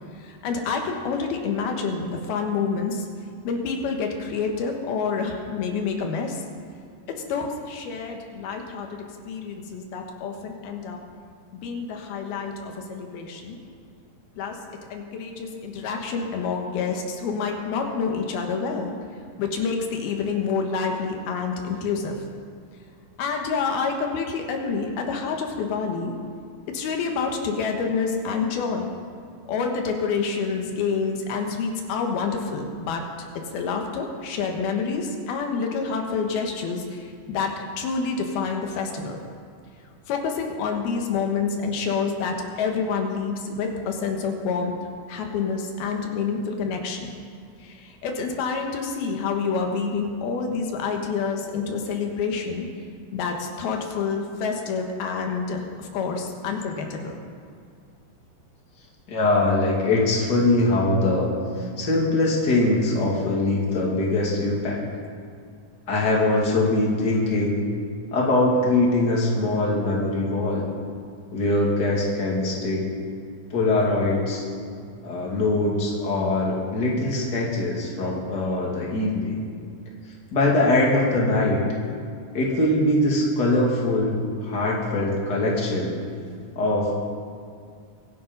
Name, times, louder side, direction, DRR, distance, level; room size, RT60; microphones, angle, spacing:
voice 1, 0.2-3.1 3.4-6.4 7.1-11.0 11.5-13.6 14.4-14.6 14.9-18.9 19.4-22.2 23.2-26.2 26.7-28.9 29.5-33.1 33.5-39.2 40.1-44.7 45.1-47.1 47.6-52.7 53.1-57.1, left 5 dB, 90° left, 3 dB, 3.3 m, -28 dB
voice 2, 59.1-61.3 61.6-64.8 65.9-67.6 68.1-70.7 71.3-72.9 73.5-74.4 75.0-79.4 80.3-81.6 82.3-86.0 86.6-86.9, left 2 dB, 30° left, -3 dB, 2.8 m, -22 dB
23.5 x 8.7 x 5.5 m, 2.2 s
omnidirectional pair, 4.3 m